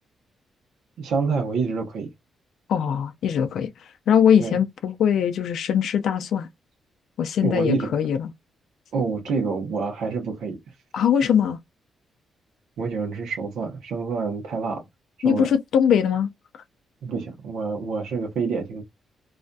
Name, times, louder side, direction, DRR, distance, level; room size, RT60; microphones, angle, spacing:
voice 1, 1.0-2.1 4.4-4.6 7.4-7.9 8.9-10.6 12.8-14.8 15.2-15.5 17.0-18.8, right 4 dB, 90° right, 0.7 m, -27 dB
voice 2, 2.7-3.7 4.1-6.5 7.2-8.3 10.9-11.6 15.2-16.3, left 8 dB, 65° left, 0.3 m, -21 dB
2.4 x 2.2 x 2.5 m
wide cardioid pair, 175°, 0 cm